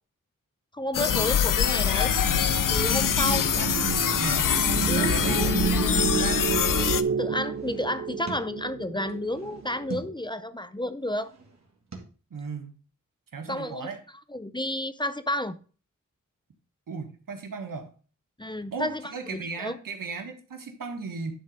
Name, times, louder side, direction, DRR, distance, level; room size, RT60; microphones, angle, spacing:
voice 1, 0.7-2.2 2.7-3.5 4.9-5.2 7.2-11.3 13.5-13.9 14.3-15.6 18.4-19.8, left 1 dB, 15° left, 0.6 m, -31 dB
sound 1, 0.9-7.0, left 9 dB, 80° left, 0.6 m, -24 dB
sound 2, 1.8-10.2, right 7 dB, 40° right, 0.4 m, -30 dB
voice 2, 3.1-4.5 5.0-6.5 12.3-12.7 13.3-14.0 16.9-17.9 18.7-21.3, right 4 dB, 90° right, 1.5 m, -36 dB
sound 3, 7.4-8.7 9.1-10.3 10.9-12.0, right 4 dB, 55° right, 2.3 m, -45 dB
11.0 x 4.0 x 4.9 m
wide cardioid pair, 65°, 32 cm